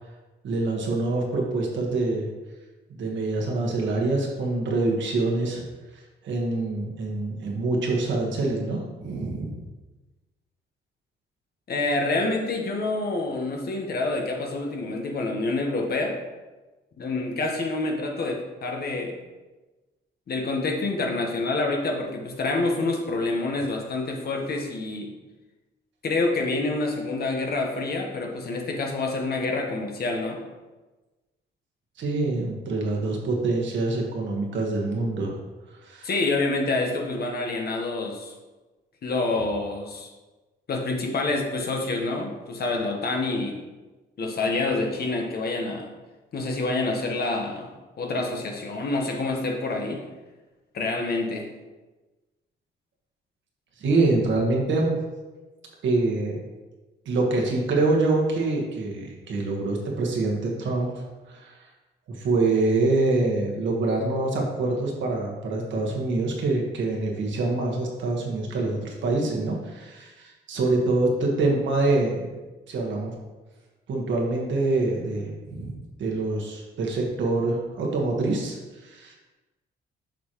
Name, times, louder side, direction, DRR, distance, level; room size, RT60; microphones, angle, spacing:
voice 1, 0.4-2.3 3.0-5.6 6.2-9.6 32.0-35.3 35.8-36.1 53.8-55.0 55.8-56.4 57.0-60.9 61.3-61.6 62.1-72.3 72.7-73.1 73.9-79.1, right 2 dB, 70° right, -1 dB, 1.6 m, -25 dB
voice 2, 11.7-16.2 17.0-19.2 20.3-25.1 26.0-30.4 36.0-38.3 39.0-40.1 40.7-43.6 44.2-45.9 46.3-47.7 48.0-50.0 50.7-51.5, left 2 dB, 50° left, 1 dB, 1.3 m, -27 dB
7.2 x 5.7 x 3.1 m, 1.2 s
cardioid pair, 90°, 20 cm